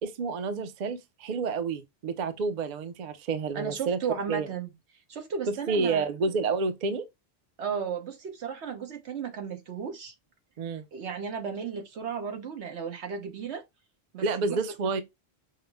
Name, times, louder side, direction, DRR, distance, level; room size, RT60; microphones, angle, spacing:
voice 1, 0.0-4.0 4.3-4.5 5.7-7.0 10.6-10.8 14.2-15.0, right 4 dB, 50° right, 0.6 m, -29 dB
voice 2, 3.5-4.7 5.1-6.1 7.6-10.1 10.9-13.7 14.1-14.6, right 6 dB, 85° right, 1.3 m, -34 dB
5.5 x 2.0 x 3.3 m
omnidirectional pair, 1.1 m